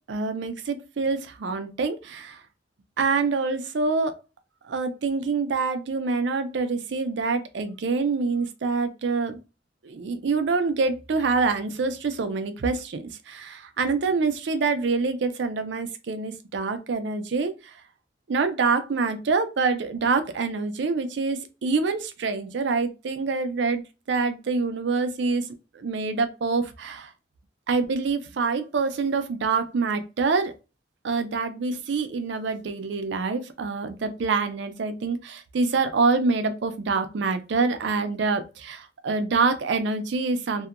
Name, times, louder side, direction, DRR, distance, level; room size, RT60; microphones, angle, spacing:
voice 1, 0.1-2.4 3.0-4.2 4.7-9.4 9.8-17.8 18.3-23.8 24.1-25.5 25.7-27.1 27.7-30.5 31.0-40.7, right 4 dB, 70° right, 8 dB, 0.4 m, -26 dB
2.7 x 2.1 x 2.4 m, 0.29 s
head